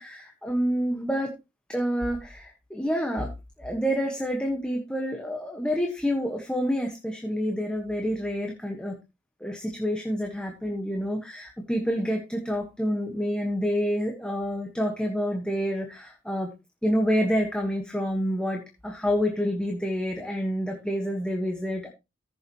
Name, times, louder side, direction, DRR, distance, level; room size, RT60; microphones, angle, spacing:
voice 1, 0.0-1.3 1.7-3.3 3.6-9.0 9.4-16.5 16.8-21.9, equal, 5° left, 1 dB, 1.6 m, -28 dB
15.0 x 7.1 x 3.1 m, 0.26 s
head